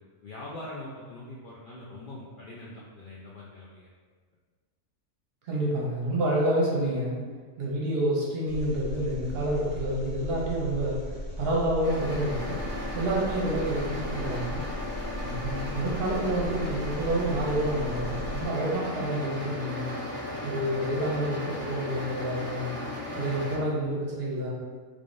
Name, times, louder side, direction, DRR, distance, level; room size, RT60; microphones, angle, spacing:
voice 1, 0.2-3.9, left 2 dB, 65° left, -5 dB, 0.5 m, -42 dB
voice 2, 5.4-7.2 7.6-14.7 15.2-19.9 20.4-22.7 23.1-24.5, right 1 dB, 55° right, -4 dB, 0.8 m, -28 dB
Engine, 8.5-18.5, left 1 dB, 15° left, 1.0 m, -37 dB
sound 1, 11.8-23.6, left 1 dB, 10° right, 1.1 m, -36 dB
3.4 x 3.4 x 2.5 m, 1.5 s
omnidirectional pair, 1.4 m